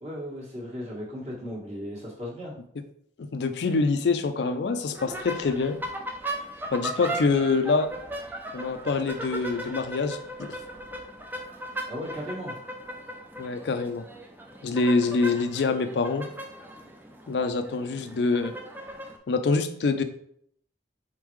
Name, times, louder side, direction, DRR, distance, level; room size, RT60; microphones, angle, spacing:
voice 1, 0.0-2.6 7.0-7.2 11.9-12.6, equal, 35° right, -4 dB, 1.4 m, -36 dB
voice 2, 3.2-5.8 6.7-7.9 8.5-10.6 13.4-14.0 14.6-16.3 17.3-18.5 19.3-20.0, left 4 dB, 80° left, 8 dB, 0.4 m, -25 dB
sound 1, 4.9-19.2, right 1 dB, 10° right, 0.4 m, -38 dB
4.3 x 3.7 x 3.1 m, 0.67 s
head